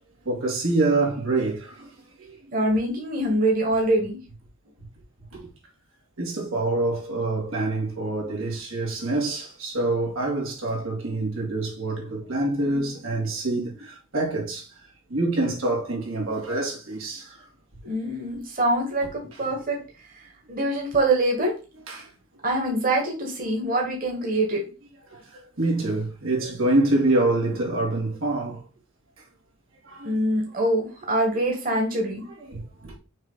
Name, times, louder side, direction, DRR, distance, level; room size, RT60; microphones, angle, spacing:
voice 1, 0.2-1.9 2.2-2.4 5.3-5.5 6.2-14.8 15.1-17.4 19.3-19.4 21.9-22.1 25.1-28.7 29.8-30.1 32.4-33.0, right 2 dB, 85° right, 2.4 m, -26 dB
voice 2, 2.5-4.2 17.8-19.8 20.5-21.5 22.4-24.6 30.0-32.2, right 1 dB, 45° right, 1.6 m, -24 dB
6.4 x 2.9 x 5.6 m
head